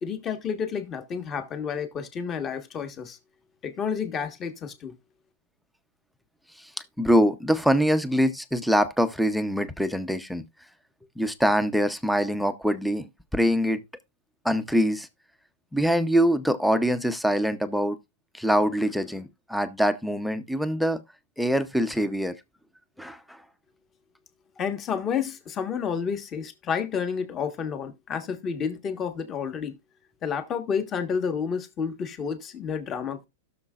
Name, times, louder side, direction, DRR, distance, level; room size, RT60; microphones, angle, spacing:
voice 1, 0.0-3.2 3.6-4.9 24.6-29.8 30.2-33.3, left 6 dB, 25° left, 1.3 m, -30 dB
voice 2, 7.0-10.4 11.2-13.8 14.4-15.1 15.7-18.0 18.3-21.0 21.4-22.4 23.0-23.4, equal, ahead, 0.6 m, -24 dB
17.0 x 6.5 x 2.4 m
supercardioid pair, 155°, 0 cm